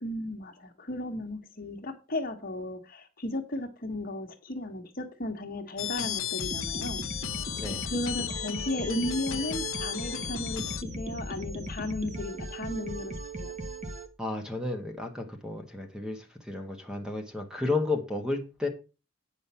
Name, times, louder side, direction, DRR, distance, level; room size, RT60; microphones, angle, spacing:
voice 1, 0.0-7.0 7.8-13.1 13.4-13.5, left 1 dB, 45° left, 1.5 m, -35 dB
sound 1, 5.8-10.8, left 10 dB, 85° left, 0.5 m, -35 dB
sound 2, 6.4-14.1, right 1 dB, 35° right, 1.2 m, -38 dB
voice 2, 14.2-18.7, left 3 dB, 5° right, 1.3 m, -32 dB
8.9 x 5.3 x 5.7 m
head